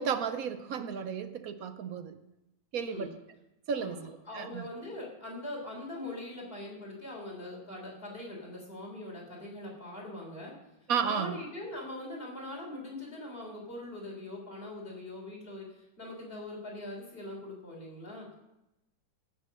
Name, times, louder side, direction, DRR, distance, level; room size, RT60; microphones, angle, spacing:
voice 1, 0.0-2.2 2.7-3.1 3.7-4.7 10.9-11.4, right 7 dB, 65° right, 10 dB, 1.0 m, -33 dB
voice 2, 2.8-3.1 3.8-10.5 11.0-18.3, left 1 dB, 30° left, -2 dB, 3.8 m, -42 dB
16.0 x 7.1 x 5.3 m, 0.92 s
omnidirectional pair, 1.9 m